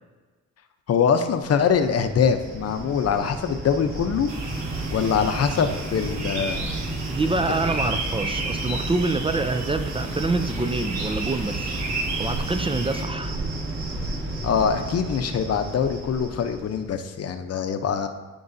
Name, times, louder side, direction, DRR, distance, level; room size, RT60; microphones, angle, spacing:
voice 1, 0.9-4.3 4.9-6.6 7.5-8.0 14.4-18.1, left 7 dB, 55° left, 8 dB, 0.7 m, -23 dB
Cricket, 1.3-17.0, right 2 dB, 45° right, 2.5 m, -32 dB
sound 1, 4.3-13.0, right 3 dB, 65° right, 1.4 m, -34 dB
voice 2, 7.1-13.4, right 3 dB, 20° right, 8 dB, 0.5 m, -26 dB
13.5 x 4.7 x 2.7 m, 1.3 s
cardioid pair, 90°, 30 cm